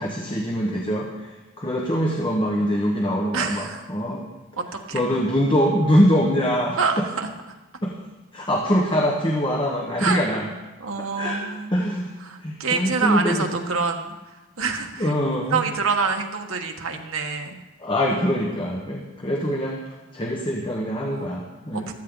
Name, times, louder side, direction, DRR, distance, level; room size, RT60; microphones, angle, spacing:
voice 1, 0.0-4.3 4.9-7.0 7.8-7.9 8.3-10.5 11.2-11.4 11.7-12.1 12.4-13.4 15.0-15.6 17.8-19.8 20.1-21.9, equal, 25° left, -1 dB, 1.2 m, -23 dB
voice 2, 3.3-3.8 4.6-5.0 6.8-7.3 10.0-10.2 10.8-11.7 12.2-15.1 15.5-17.6 21.0-21.4 21.7-21.9, right 5 dB, 70° right, 3 dB, 1.4 m, -27 dB
15.0 x 13.0 x 3.9 m, 1.1 s
head